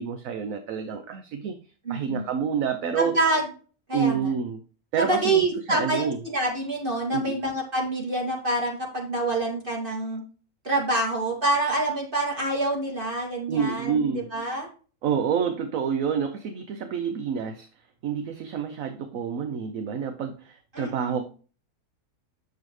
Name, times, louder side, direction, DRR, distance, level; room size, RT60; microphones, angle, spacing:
voice 1, 0.0-1.6 1.9-3.1 3.9-4.6 4.9-6.2 7.1-7.4 13.5-14.3 15.0-17.7 18.0-21.2, right 7 dB, 70° right, 7 dB, 1.1 m, -28 dB
voice 2, 1.8-2.2 3.0-3.4 3.9-4.3 5.0-10.2 10.6-14.7 20.7-21.2, right 2 dB, 35° right, -3 dB, 2.5 m, -26 dB
7.6 x 7.0 x 3.2 m, 0.39 s
omnidirectional pair, 1.6 m